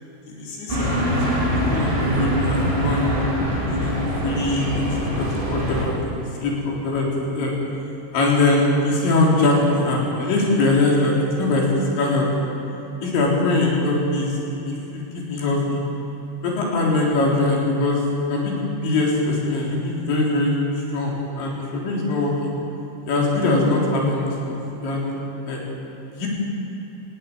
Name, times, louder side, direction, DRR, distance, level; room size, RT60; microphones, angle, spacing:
voice 1, 0.3-3.2 3.7-4.0 4.2-6.0 6.4-7.5 8.1-12.5 13.0-14.4 14.7-15.0 15.3-15.8 16.4-18.0 18.3-20.5 20.9-22.5 23.1-25.2 25.5-25.6 26.1-26.3, left 2 dB, 75° left, -3 dB, 6.1 m, -22 dB
sound 1, 0.7-5.8, equal, 10° right, 5.0 m, -23 dB
20.0 x 15.5 x 9.2 m, 3.0 s
omnidirectional pair, 5.2 m